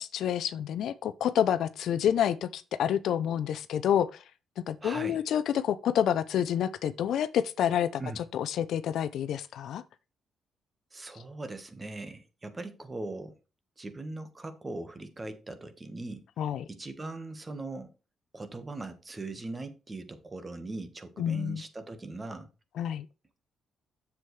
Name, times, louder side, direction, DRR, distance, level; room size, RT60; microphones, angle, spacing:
voice 1, 0.0-4.1 4.7-8.0 8.3-9.8 16.4-16.6 21.2-21.6 22.8-23.1, left 9 dB, 75° left, 0.6 m, -28 dB
voice 2, 4.8-5.2 8.0-8.2 10.9-13.4 13.8-16.2 16.7-17.9 18.3-22.5, right 2 dB, 25° right, 1.4 m, -40 dB
7.6 x 7.2 x 3.3 m
cardioid pair, 90°, 0 cm